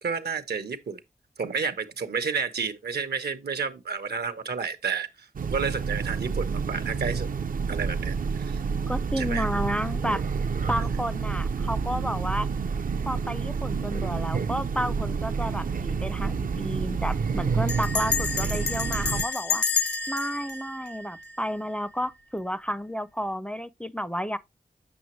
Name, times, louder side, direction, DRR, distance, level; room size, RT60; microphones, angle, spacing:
voice 1, 0.0-1.0 1.4-7.3 7.7-8.6 9.2-9.5, right 5 dB, 80° right, 0.9 m, -31 dB
Train, 5.4-19.2, right 5 dB, 60° right, 0.4 m, -29 dB
voice 2, 8.9-10.2 10.7-12.5 13.1-19.6 20.1-24.4, equal, 5° left, 0.4 m, -31 dB
Bell, 16.9-17.0 17.7-21.8, left 5 dB, 85° left, 0.6 m, -30 dB
7.9 x 5.8 x 3.0 m
wide cardioid pair, 70°, 16 cm